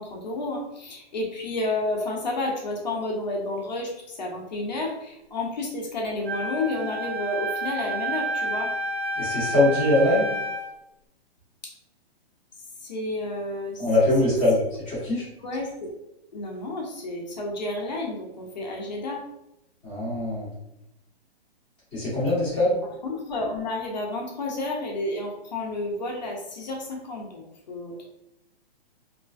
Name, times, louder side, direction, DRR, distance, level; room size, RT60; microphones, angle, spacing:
voice 1, 0.0-8.7 12.8-14.1 15.4-15.9 16.3-19.2 23.0-28.1, left 2 dB, 45° left, -1 dB, 0.5 m, -31 dB
Wind instrument woodwind instrument, 6.3-10.7, right 1 dB, 90° right, 1.2 m, -30 dB
voice 2, 9.2-10.3 13.8-14.6 14.9-15.2 19.8-20.5 21.9-22.8, left 1 dB, 5° left, -14 dB, 0.9 m, -22 dB
2.4 x 2.2 x 2.3 m, 0.87 s
hypercardioid pair, 170°, 32 cm